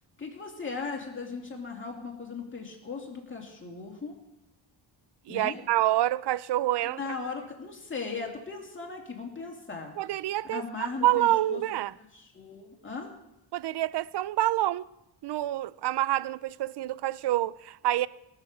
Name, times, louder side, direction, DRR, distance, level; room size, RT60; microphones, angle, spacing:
voice 1, 0.2-4.2 5.3-5.6 6.8-9.9 10.4-11.6 12.0-13.1, left 4 dB, 25° left, 2.7 m, -38 dB
voice 2, 5.3-7.0 10.0-10.6 11.0-11.9 13.5-14.9 15.2-18.1, right 14 dB, 60° right, 0.5 m, -27 dB
19.0 x 6.8 x 6.7 m
wide cardioid pair, 125°, 47 cm